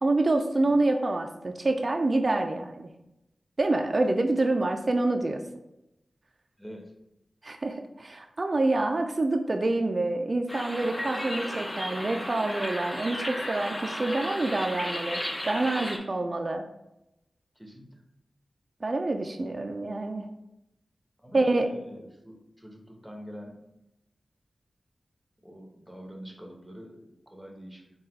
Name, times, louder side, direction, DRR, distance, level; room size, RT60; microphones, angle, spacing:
voice 1, 0.0-2.9 3.6-5.4 7.4-16.7 18.8-20.3 21.3-21.7, right 2 dB, 45° right, 5 dB, 0.4 m, -27 dB
voice 2, 6.6-6.9 17.5-18.0 21.2-23.6 25.4-27.9, equal, 5° right, 1 dB, 1.0 m, -45 dB
sound 1, 10.5-16.0, left 1 dB, 20° left, 0.7 m, -34 dB
4.0 x 2.3 x 3.9 m, 0.88 s
cardioid pair, 45°, 0 cm